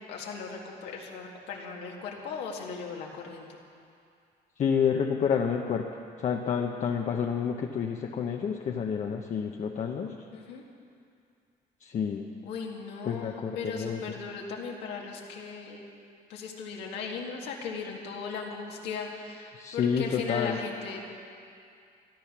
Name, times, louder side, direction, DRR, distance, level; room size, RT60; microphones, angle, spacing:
voice 1, 0.1-3.6 10.3-10.6 12.4-15.8 16.3-21.0, left 5 dB, 85° left, -1 dB, 1.9 m, -37 dB
voice 2, 4.6-5.9 6.2-10.2 11.8-12.3 13.0-14.0 19.6-20.6, left 7 dB, 45° left, 1 dB, 0.8 m, -29 dB
13.5 x 12.0 x 6.0 m, 2.4 s
cardioid pair, 110°, 17 cm